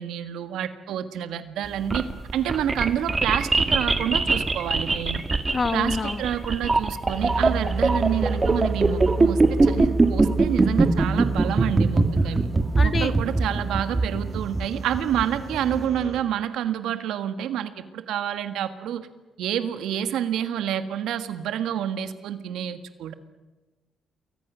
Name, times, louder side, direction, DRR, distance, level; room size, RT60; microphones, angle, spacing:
voice 1, 0.0-5.2 5.7-12.5 12.8-19.1 19.4-23.1, right 10 dB, 85° right, 10 dB, 1.6 m, -28 dB
sound 1, 1.7-15.8, right 3 dB, 25° right, 2.0 m, -22 dB
voice 2, 5.5-6.2 12.8-13.1, left 4 dB, 35° left, 11 dB, 1.3 m, -26 dB
sound 2, 7.2-16.2, right 3 dB, 45° right, 4.0 m, -31 dB
28.5 x 22.5 x 6.3 m, 1.2 s
cardioid pair, 90°, 0 cm